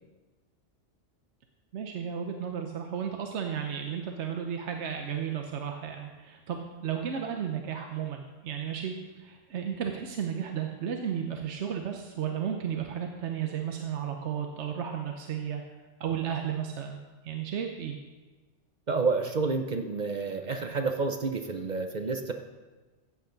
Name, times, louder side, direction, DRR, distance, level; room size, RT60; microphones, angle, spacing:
voice 1, 1.7-15.6 16.0-17.0 17.2-18.0, right 8 dB, 70° right, 3 dB, 1.0 m, -33 dB
voice 2, 18.9-22.3, right 4 dB, 45° right, 5 dB, 0.7 m, -29 dB
14.5 x 8.2 x 3.9 m, 1.2 s
omnidirectional pair, 1.3 m